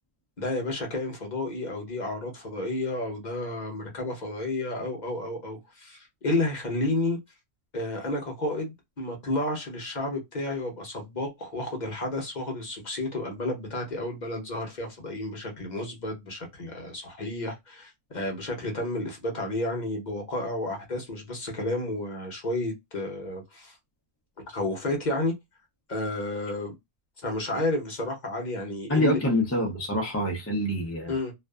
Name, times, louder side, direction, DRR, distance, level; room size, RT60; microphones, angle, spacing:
voice 1, 0.4-7.2 7.7-23.8 24.5-25.3 25.9-26.7 27.2-29.2 31.1-31.3, left 2 dB, 40° left, 0.8 m, -31 dB
voice 2, 28.9-31.1, left 1 dB, 20° left, 0.3 m, -26 dB
2.5 x 2.3 x 2.2 m
omnidirectional pair, 1.3 m